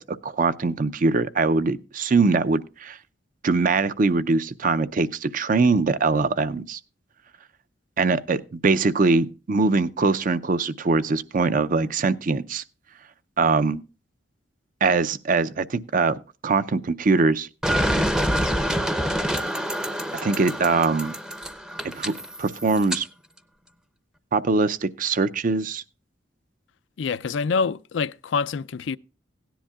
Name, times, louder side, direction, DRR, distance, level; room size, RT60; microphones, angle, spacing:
voice 1, 0.0-3.0 3.4-6.8 8.0-12.6 13.4-13.8 14.8-17.5 20.2-21.1 21.9-23.1 24.3-25.8, right 3 dB, 45° right, 0.5 m, -22 dB
sound 1, 17.6-23.0, equal, 5° right, 0.6 m, -26 dB
voice 2, 27.0-29.0, left 5 dB, 75° left, 0.4 m, -26 dB
17.0 x 10.0 x 2.3 m
head